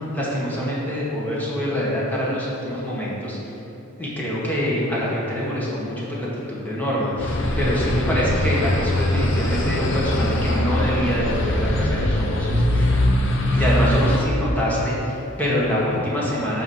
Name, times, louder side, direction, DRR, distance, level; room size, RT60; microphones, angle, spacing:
voice 1, 0.1-3.4 4.0-12.8 13.5-16.6, equal, 10° left, -7 dB, 1.4 m, -25 dB
sound 1, 7.2-14.2, left 1 dB, 60° left, 0.8 m, -22 dB
7.0 x 5.0 x 5.6 m, 3.0 s
head